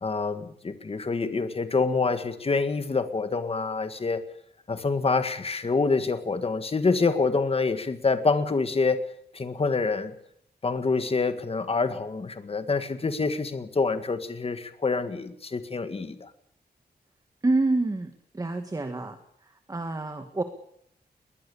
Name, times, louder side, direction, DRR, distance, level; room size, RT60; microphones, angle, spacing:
voice 1, 0.0-4.2 4.7-9.0 9.3-10.1 10.6-16.3, left 4 dB, 35° left, 10 dB, 1.8 m, -26 dB
voice 2, 17.4-19.2 19.7-20.4, right 2 dB, 20° right, 7 dB, 1.7 m, -27 dB
21.5 x 20.0 x 7.1 m, 0.72 s
wide cardioid pair, 145°, 17 cm